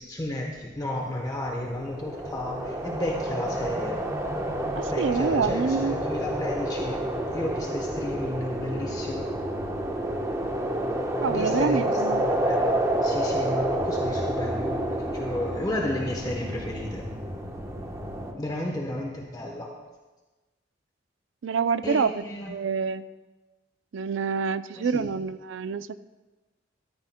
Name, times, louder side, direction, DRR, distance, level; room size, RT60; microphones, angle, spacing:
voice 1, 0.0-4.0 4.9-9.3 11.3-11.8 12.2-17.1 18.4-19.7 21.8-22.5 24.7-25.1, left 1 dB, 20° left, 0 dB, 0.9 m, -33 dB
sound 1, 1.3-18.3, right 1 dB, 15° right, 1.0 m, -29 dB
voice 2, 4.8-5.9 11.2-12.3 21.4-23.0 23.9-26.0, right 5 dB, 75° right, 13 dB, 0.4 m, -27 dB
14.0 x 13.5 x 2.2 m, 1.2 s
head